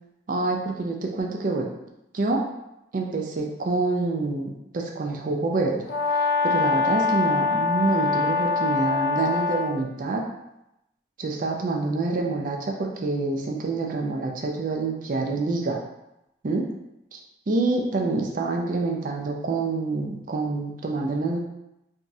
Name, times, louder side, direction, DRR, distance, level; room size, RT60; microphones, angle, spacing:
voice 1, 0.3-1.7 2.1-2.4 2.9-5.8 6.4-10.2 11.2-15.8 16.4-16.6 17.1-17.2 17.5-21.4, right 3 dB, 45° right, 1 dB, 0.4 m, -26 dB
Brass instrument, 5.9-9.8, left 4 dB, 50° left, 0.4 m, -24 dB
3.5 x 2.0 x 2.6 m, 0.87 s
head